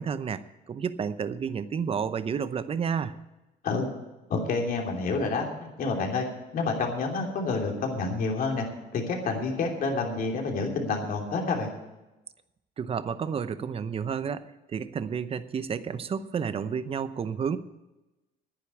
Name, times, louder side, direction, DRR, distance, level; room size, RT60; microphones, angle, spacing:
voice 1, 0.0-3.1 12.8-17.6, right 6 dB, 35° right, 13 dB, 0.7 m, -31 dB
voice 2, 4.3-6.3 6.5-8.7 8.9-11.7, left 4 dB, 60° left, 1 dB, 3.1 m, -28 dB
10.5 x 9.9 x 8.5 m, 1.0 s
cardioid pair, 110°, 17 cm